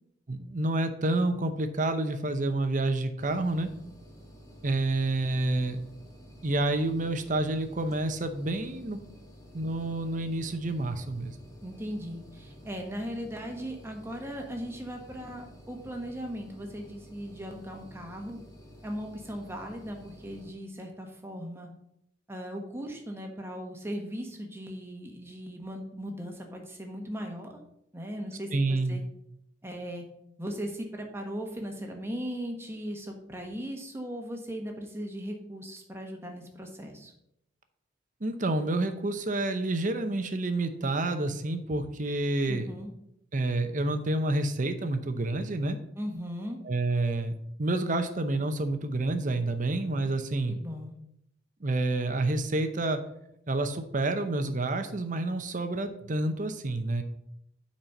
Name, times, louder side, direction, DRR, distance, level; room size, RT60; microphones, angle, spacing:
voice 1, 0.3-3.7 4.6-5.8 6.4-9.0 9.5-11.4 28.5-29.0 38.2-42.7 43.3-45.8 46.6-47.3 47.6-50.5 51.6-53.0 53.5-57.0, right 2 dB, 40° right, 8 dB, 0.8 m, -29 dB
sound 1, 3.2-20.5, equal, 20° left, 1.4 m, -51 dB
voice 2, 11.6-18.4 18.8-21.7 22.3-27.6 27.9-29.0 29.6-30.0 30.4-37.1 42.5-42.9 45.9-46.6 50.5-51.0, equal, 15° right, 2 dB, 1.2 m, -38 dB
9.0 x 4.3 x 5.3 m, 0.78 s
head